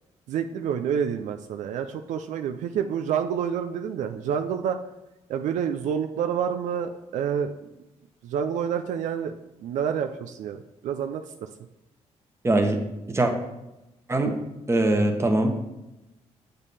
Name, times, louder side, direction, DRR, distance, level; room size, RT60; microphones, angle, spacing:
voice 1, 0.3-4.8 5.3-7.5 8.2-11.5, right 8 dB, 75° right, 6 dB, 0.4 m, -28 dB
voice 2, 12.4-12.8 13.1-13.3 14.1-14.4 14.7-15.6, right 2 dB, 20° right, 4 dB, 1.2 m, -22 dB
7.2 x 5.2 x 4.1 m, 0.96 s
cardioid pair, 70°, 13 cm